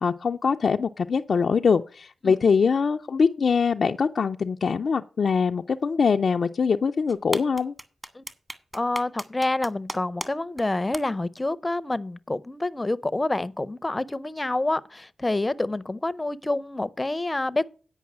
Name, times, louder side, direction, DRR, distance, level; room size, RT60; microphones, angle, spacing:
voice 1, 0.0-7.7, left 5 dB, 65° left, 0.4 m, -23 dB
sound 1, 7.1-10.3 10.6-10.7 10.9-11.0, right 1 dB, 15° right, 1.5 m, -34 dB
voice 2, 8.7-17.7, left 2 dB, 25° left, 0.6 m, -27 dB
9.5 x 5.4 x 7.2 m
cardioid pair, 50°, 0 cm